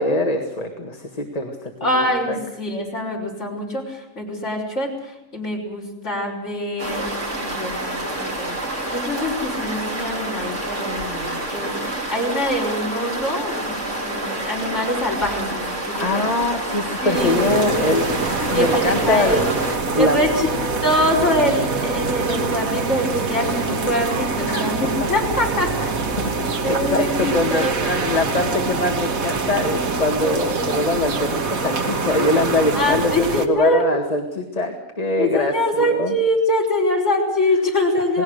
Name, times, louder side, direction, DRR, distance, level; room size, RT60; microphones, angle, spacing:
voice 1, 0.0-1.6 1.8-2.4 16.0-19.5 19.9-20.2 24.5-24.7 26.2-33.1 33.5-35.5 35.8-36.1, left 2 dB, 30° left, 3 dB, 1.8 m, -23 dB
voice 2, 1.8-16.3 17.0-18.1 18.5-19.5 20.0-20.5 20.8-25.9 26.4-28.1 32.7-33.8 35.2-38.2, left 1 dB, 55° left, -2 dB, 5.4 m, -24 dB
sound 1, 6.8-19.8, right 1 dB, 60° right, 3.9 m, -28 dB
sound 2, 17.1-33.5, right 4 dB, 80° right, 2.0 m, -24 dB
28.5 x 19.0 x 6.5 m, 0.89 s
omnidirectional pair, 1.4 m